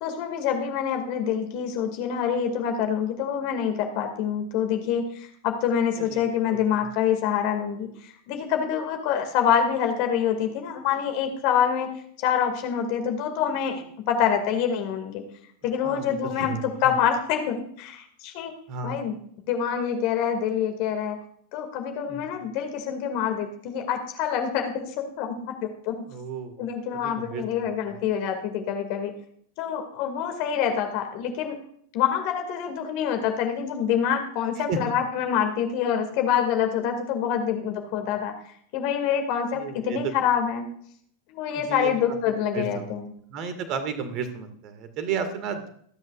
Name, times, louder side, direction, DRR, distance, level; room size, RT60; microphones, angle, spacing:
voice 1, 0.0-11.9 12.2-15.2 15.6-18.5 18.8-19.2 19.5-21.2 21.5-26.0 26.6-29.1 29.6-31.6 31.9-38.3 38.7-40.7 41.3-43.1, left 8 dB, 45° left, 5 dB, 2.3 m, -26 dB
voice 2, 6.0-6.9 15.8-16.6 18.7-19.0 22.1-22.5 26.1-26.7 27.0-28.0 34.6-35.0 39.5-40.0 41.6-42.2 42.5-42.9 43.3-45.7, right 5 dB, 40° right, 9 dB, 2.0 m, -34 dB
26.5 x 9.7 x 2.5 m, 0.63 s
figure-of-eight pair, 90°, 0 cm